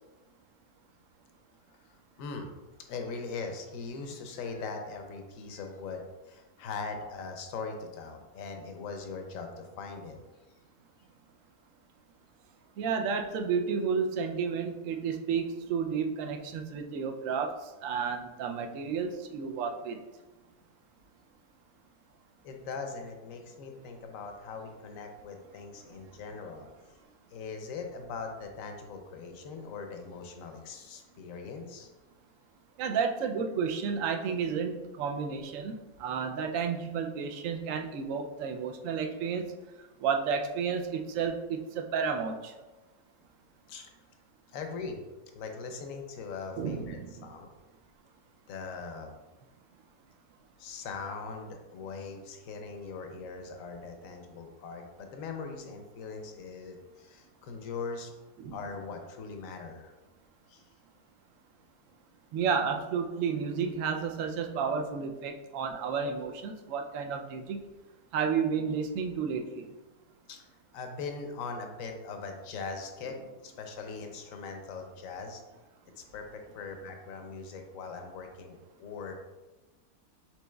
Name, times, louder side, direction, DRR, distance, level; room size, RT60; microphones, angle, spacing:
voice 1, 1.7-2.5 2.8-10.2 22.4-27.0 27.3-31.9 43.7-43.9 44.5-45.0 45.3-47.5 48.5-49.1 50.6-58.1 58.5-59.9 60.5-60.6 70.3-70.5 70.7-73.2 73.4-75.4 76.0-79.1, left 4 dB, 65° left, 4 dB, 1.0 m, -41 dB
voice 2, 12.8-20.0 32.8-39.5 40.0-42.5 46.6-47.3 58.4-58.6 62.3-67.6 68.1-69.7, right 6 dB, 70° right, 4 dB, 0.8 m, -31 dB
6.1 x 3.9 x 2.3 m, 1.2 s
omnidirectional pair, 1.6 m